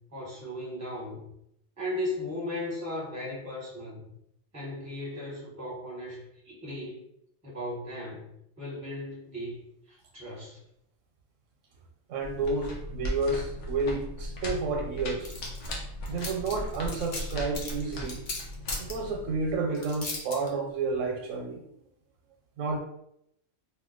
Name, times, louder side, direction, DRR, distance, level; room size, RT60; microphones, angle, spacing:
voice 1, 0.1-1.3 1.8-4.1 4.5-7.0 7.4-10.6, left 1 dB, 20° right, -4 dB, 0.6 m, -37 dB
voice 2, 12.1-15.4 16.1-18.2 18.8-21.6 22.6-22.8, right 3 dB, 85° right, 3 dB, 0.9 m, -30 dB
sound 1, 12.2-19.5, equal, 75° left, 1.0 m, -37 dB
sound 2, 15.2-15.7 16.1-18.9 19.7-20.5, left 3 dB, 50° left, 0.7 m, -36 dB
2.6 x 2.2 x 3.7 m, 0.77 s
omnidirectional pair, 1.3 m